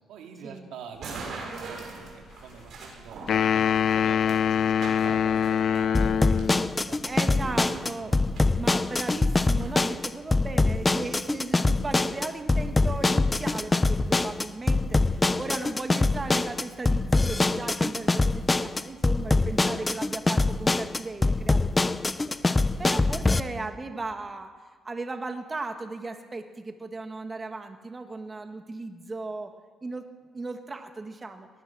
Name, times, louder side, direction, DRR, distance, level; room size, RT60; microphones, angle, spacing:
voice 1, 0.1-8.3, right 6 dB, 85° right, 3 dB, 2.9 m, -45 dB
sound 1, 0.9-9.7, right 3 dB, 65° right, 6.7 m, -43 dB
sound 2, 3.3-6.6, left 8 dB, 60° left, 0.5 m, -24 dB
sound 3, 5.9-23.4, left 2 dB, 20° left, 0.8 m, -24 dB
voice 2, 6.8-8.1 8.6-24.5 24.8-29.5 29.8-30.1 30.3-31.5, right 3 dB, 25° right, 6 dB, 1.8 m, -36 dB
21.5 x 19.5 x 6.3 m, 1.4 s
cardioid pair, 90°, 0 cm